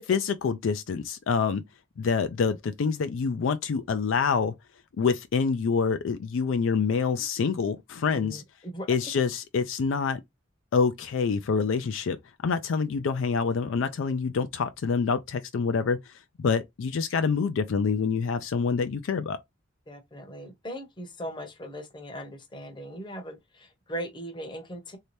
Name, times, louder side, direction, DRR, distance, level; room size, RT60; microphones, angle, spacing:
voice 1, 0.1-1.6 2.0-4.5 5.0-8.4 8.9-10.2 10.7-12.2 12.4-16.0 16.4-19.4, left 5 dB, 70° left, 0.4 m, -26 dB
voice 2, 8.1-8.9 19.9-25.0, equal, 25° left, 0.8 m, -39 dB
3.2 x 2.8 x 3.1 m
head